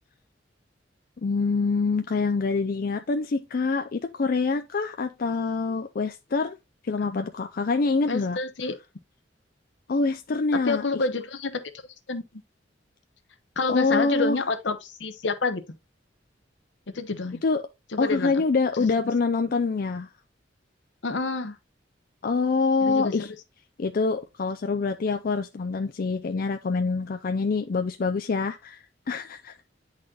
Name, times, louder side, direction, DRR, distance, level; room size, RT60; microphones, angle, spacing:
voice 1, 1.2-6.6 6.8-8.4 9.9-10.8 13.7-14.4 17.4-17.6 18.0-20.1 22.2-23.3 23.8-29.5, left 4 dB, 50° left, 0.4 m, -25 dB
voice 2, 8.1-8.7 10.5-11.6 12.1-12.2 13.6-15.6 16.9-17.4 17.9-18.4 18.8-18.9 21.0-21.6 22.8-23.3, left 3 dB, 75° left, 0.9 m, -28 dB
10.0 x 4.1 x 2.4 m
head